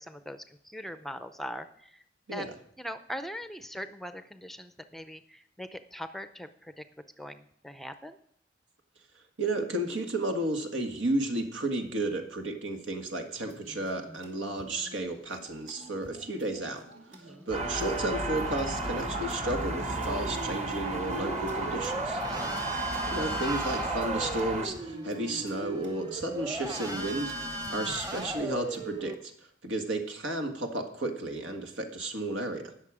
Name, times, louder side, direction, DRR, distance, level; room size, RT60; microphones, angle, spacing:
voice 1, 0.0-2.0 2.3-2.5 2.8-6.8 7.2-8.2 17.1-17.5 22.3-22.7, equal, ahead, 10 dB, 0.5 m, -41 dB
voice 2, 9.4-16.8 17.5-22.2 23.1-29.3 29.6-32.7, right 2 dB, 90° right, 5 dB, 1.7 m, -33 dB
sound 1, 13.3-28.9, right 1 dB, 65° right, 2.5 m, -52 dB
sound 2, 17.5-24.7, right 2 dB, 35° right, 1.5 m, -33 dB
sound 3, 20.0-29.1, right 1 dB, 20° right, 1.1 m, -37 dB
18.5 x 6.7 x 4.9 m, 0.68 s
head